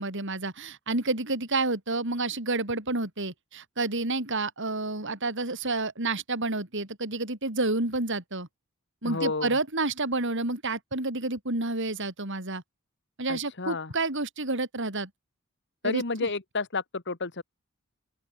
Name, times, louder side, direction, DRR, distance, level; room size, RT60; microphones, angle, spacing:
voice 1, 0.0-8.5 9.0-12.6 13.2-15.1 15.8-16.3, right 2 dB, 55° right, 4.3 m, -29 dB
voice 2, 9.0-9.6 13.3-13.9 15.8-17.4, left 3 dB, 55° left, 1.8 m, -31 dB
open air
head